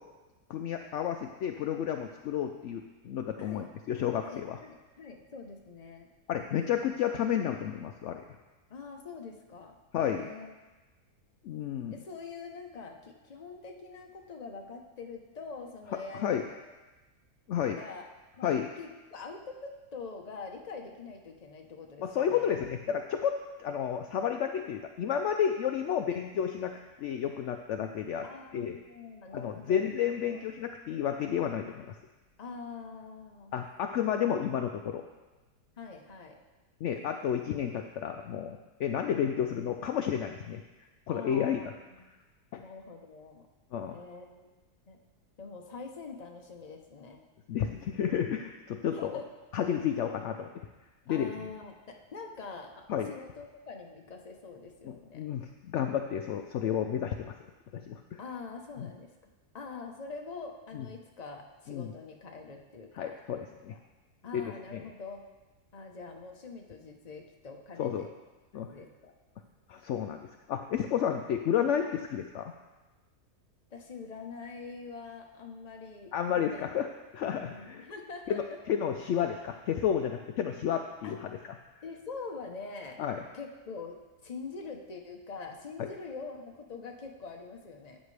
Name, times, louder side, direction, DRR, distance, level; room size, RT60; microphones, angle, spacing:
voice 1, 0.5-4.6 6.3-8.2 9.9-10.3 11.4-12.0 16.1-16.4 17.5-17.8 18.4-18.7 22.0-26.7 27.0-28.2 28.5-28.8 29.3-31.9 33.5-35.0 36.8-40.6 41.1-41.6 42.5-42.6 43.7-44.0 47.5-49.2 49.5-50.7 51.1-51.3 52.9-53.1 54.8-57.3 57.7-58.2 58.8-58.9 60.7-60.9 61.7-61.9 62.9-63.8 64.3-64.4 64.7-64.8 67.8-68.1 68.5-68.7 69.7-72.5 76.1-76.9 77.1-77.9 78.3-81.3 83.0-83.2 85.8-85.9, left 9 dB, 75° left, 5 dB, 0.6 m, -31 dB
voice 2, 3.4-3.7 4.2-6.1 8.7-9.8 10.0-10.5 11.9-16.4 17.8-18.1 18.4-22.5 26.1-26.2 28.2-30.0 30.3-30.4 32.4-33.5 35.8-36.4 41.1-42.1 42.6-43.5 43.9-44.5 44.9-45.0 45.4-47.2 48.9-49.2 51.1-55.2 58.2-63.1 63.7-63.8 64.2-65.2 65.7-68.1 68.5-69.1 73.7-76.7 77.4-78.6 81.0-81.2 81.8-83.0 83.3-84.0 84.2-88.0, left 4 dB, 30° left, 2 dB, 0.8 m, -44 dB
12.5 x 8.7 x 3.3 m, 1.2 s
omnidirectional pair, 1.7 m